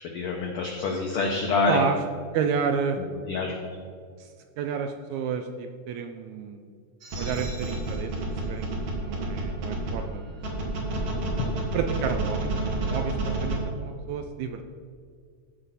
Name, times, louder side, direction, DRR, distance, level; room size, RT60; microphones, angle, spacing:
voice 1, 0.1-1.8 3.3-3.7 11.4-11.5, left 4 dB, 85° left, 1 dB, 1.2 m, -26 dB
voice 2, 2.3-3.0 4.2-4.3 4.6-6.6 7.2-8.7 9.0-10.2 10.5-10.6 11.7-14.7, right 7 dB, 80° right, 6 dB, 1.7 m, -30 dB
sound 1, 7.0-9.9 10.4-13.6, right 2 dB, 55° right, 2.5 m, -29 dB
15.0 x 5.4 x 4.2 m, 2.1 s
omnidirectional pair, 3.7 m